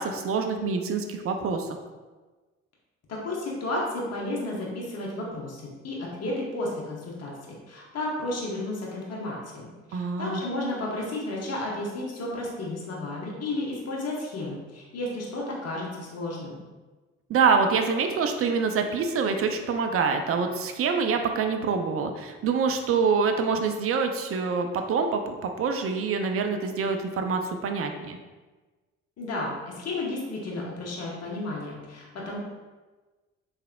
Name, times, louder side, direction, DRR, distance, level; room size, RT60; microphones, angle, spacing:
voice 1, 0.0-1.7 9.9-10.4 17.3-28.2, right 5 dB, 40° right, 6 dB, 0.5 m, -26 dB
voice 2, 3.1-16.6 29.2-32.4, left 2 dB, 45° left, -3 dB, 1.1 m, -32 dB
3.4 x 3.3 x 2.2 m, 1.3 s
hypercardioid pair, 45°, 34 cm